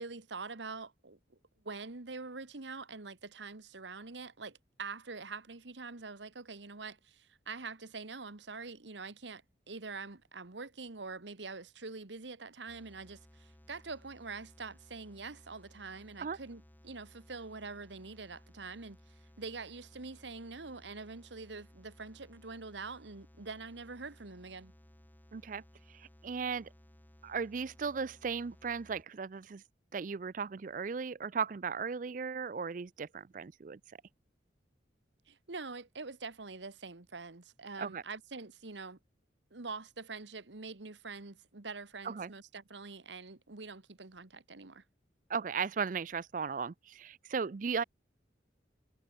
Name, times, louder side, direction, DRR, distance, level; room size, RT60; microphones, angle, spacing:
voice 1, 0.0-1.4 1.6-9.4 9.7-19.0 19.4-24.7 35.3-39.0 39.5-44.8, right 4 dB, 80° right, 1.5 m, -45 dB
sound 1, 12.7-29.0, equal, 10° left, 1.2 m, -60 dB
voice 2, 25.3-25.6 25.9-26.7 27.2-29.6 29.9-33.8 37.8-38.0 42.0-42.3 45.3-47.8, right 5 dB, 45° right, 0.4 m, -36 dB
head